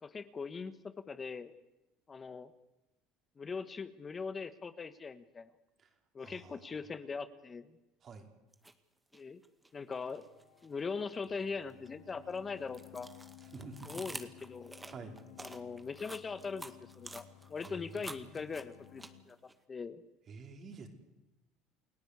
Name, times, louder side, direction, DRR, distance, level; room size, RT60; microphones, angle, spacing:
voice 1, 0.0-1.5 2.1-2.5 3.4-5.5 6.1-7.7 9.1-9.4 9.7-10.2 10.6-13.1 13.9-14.7 15.4-20.0, left 5 dB, 30° left, 11 dB, 1.3 m, -41 dB
voice 2, 5.8-6.7 8.0-8.3 13.4-13.9 14.9-15.1 17.6-18.6 20.3-20.9, right 4 dB, 45° right, 4 dB, 4.7 m, -50 dB
sound 1, 8.5-8.7 9.1-10.7 11.1-19.5, right 2 dB, 10° right, 2.0 m, -49 dB
sound 2, 10.1-19.2, left 13 dB, 80° left, 3.6 m, -57 dB
29.5 x 17.5 x 8.3 m, 0.96 s
supercardioid pair, 85°, 0 cm